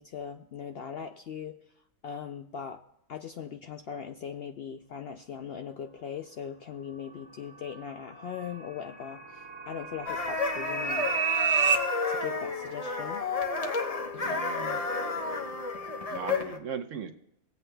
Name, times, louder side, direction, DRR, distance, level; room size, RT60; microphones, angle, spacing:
voice 1, 0.0-1.6 2.0-2.8 3.1-11.1 12.1-13.2 14.1-14.4 15.0-15.1, left 7 dB, 65° left, 6 dB, 0.6 m, -40 dB
sound 1, 7.4-11.8, right 6 dB, 20° right, 1.2 m, -31 dB
sound 2, 10.1-16.6, left 3 dB, 30° left, 0.9 m, -31 dB
voice 2, 14.2-14.9 16.1-17.1, right 7 dB, 65° right, 6 dB, 1.1 m, -38 dB
17.5 x 8.1 x 2.2 m, 0.77 s
omnidirectional pair, 1.5 m